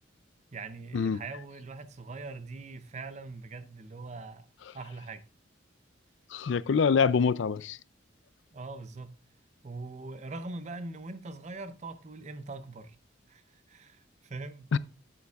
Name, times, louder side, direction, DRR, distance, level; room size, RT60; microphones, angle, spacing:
voice 1, 0.5-4.5 4.7-5.2 8.5-9.1 9.6-13.0 13.3-14.8, right 3 dB, 35° right, 0.6 m, -42 dB
voice 2, 6.3-7.8 14.7-14.8, left 5 dB, 65° left, 0.4 m, -25 dB
9.4 x 8.6 x 2.4 m
head